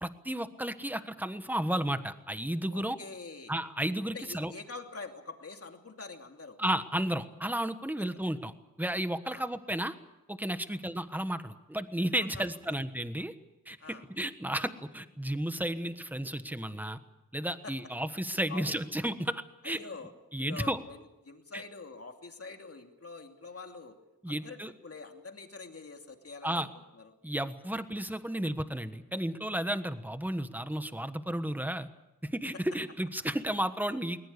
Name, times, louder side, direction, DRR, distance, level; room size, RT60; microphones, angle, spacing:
voice 1, 0.0-3.0 3.5-4.5 6.6-9.9 10.3-13.3 13.7-17.0 17.3-19.8 20.3-20.8 21.5-21.6 24.2-24.7 26.4-26.7 27.2-31.9 32.2-34.2, right 1 dB, 5° right, 10 dB, 1.3 m, -33 dB
voice 2, 2.7-3.5 4.1-6.6 8.0-8.1 9.3-9.5 12.3-12.7 13.8-14.0 17.6-17.7 18.5-18.7 19.6-20.1 20.5-21.0 21.2-23.9 24.3-26.7 27.0-27.1, left 4 dB, 45° left, 4 dB, 2.7 m, -45 dB
20.5 x 20.5 x 8.5 m, 0.96 s
wide cardioid pair, 110°, 33 cm